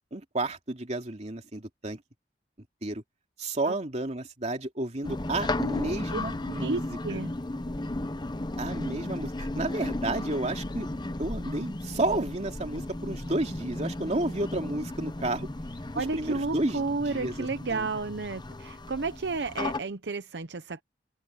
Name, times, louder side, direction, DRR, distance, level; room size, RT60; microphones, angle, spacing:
voice 1, 0.1-2.0 2.8-3.0 3.4-7.2 8.6-10.9 11.2-15.5 15.9-17.9, right 2 dB, 40° right, 2.7 m, -32 dB
sound 1, 5.0-19.8, left 2 dB, 25° left, 0.8 m, -35 dB
voice 2, 6.6-7.3 15.9-20.8, right 3 dB, 75° right, 0.8 m, -32 dB
head